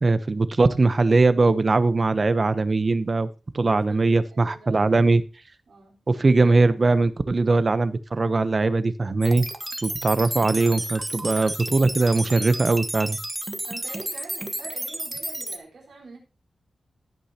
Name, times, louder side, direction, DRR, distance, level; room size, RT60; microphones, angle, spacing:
voice 1, 0.0-3.3 3.5-5.2 6.1-9.5 9.8-13.2, right 3 dB, 40° right, 0.8 m, -20 dB
voice 2, 3.6-5.1 5.7-6.0 13.7-16.2, right 3 dB, 75° right, 4.3 m, -44 dB
bleep bloops, 9.2-15.6, right 1 dB, 15° right, 1.2 m, -32 dB
16.0 x 8.4 x 2.9 m
wide cardioid pair, 125°, 0 cm